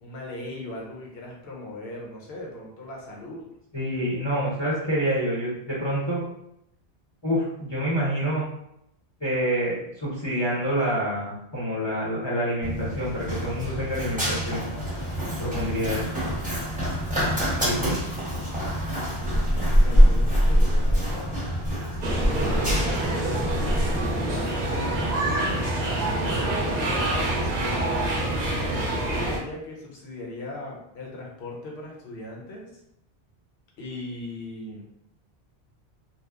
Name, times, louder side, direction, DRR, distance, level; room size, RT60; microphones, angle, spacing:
voice 1, 0.0-3.5 19.0-21.3 22.0-25.6 26.1-28.0 28.6-32.7 33.8-34.9, left 2 dB, 75° left, -2 dB, 0.9 m, -38 dB
voice 2, 3.7-6.2 7.2-8.5 9.2-14.7 15.4-16.1 17.6-18.0, equal, 30° left, -8 dB, 0.7 m, -27 dB
Run, 12.6-28.7, equal, 10° right, 0.7 m, -25 dB
sound 1, 22.0-29.4, right 1 dB, 55° right, 0.5 m, -26 dB
2.8 x 2.0 x 2.3 m, 0.78 s
omnidirectional pair, 1.1 m